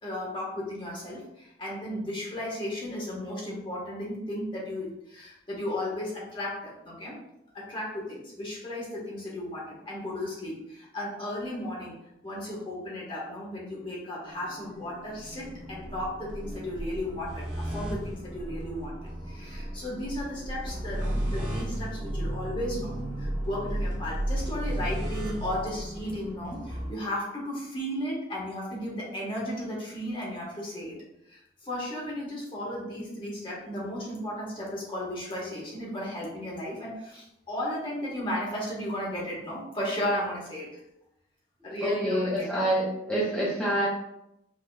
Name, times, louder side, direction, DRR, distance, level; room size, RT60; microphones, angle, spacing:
voice 1, 0.0-7.2 7.5-11.9 12.2-31.0 31.3-40.8 41.6-42.6, left 1 dB, 30° left, -5 dB, 1.2 m, -35 dB
sound 1, 14.2-26.9, right 1 dB, 50° right, 1.2 m, -34 dB
voice 2, 41.8-43.9, right 1 dB, 5° left, -9 dB, 0.7 m, -27 dB
5.0 x 2.9 x 2.2 m, 0.83 s
head